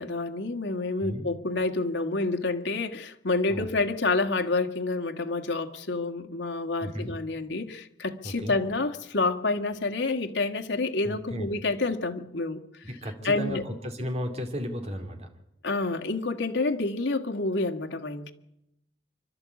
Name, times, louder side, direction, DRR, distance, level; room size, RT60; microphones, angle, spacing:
voice 1, 0.0-12.9 13.2-13.6 15.6-18.3, left 3 dB, 85° left, 4 dB, 1.8 m, -28 dB
voice 2, 6.8-7.1 8.2-8.5 11.0-11.5 12.8-15.3, equal, 35° right, 5 dB, 2.8 m, -34 dB
27.0 x 12.5 x 8.3 m, 0.85 s
head